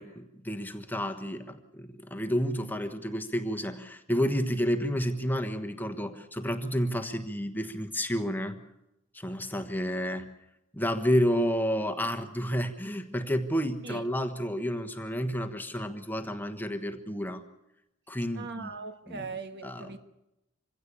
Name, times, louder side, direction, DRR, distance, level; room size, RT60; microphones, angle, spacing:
voice 1, 0.0-8.6 9.1-10.3 10.7-17.4 18.1-18.7 19.1-19.3 19.6-20.0, equal, 10° left, 1.3 m, -30 dB
voice 2, 18.3-20.0, right 4 dB, 50° right, 1.5 m, -40 dB
25.5 x 16.5 x 8.4 m
head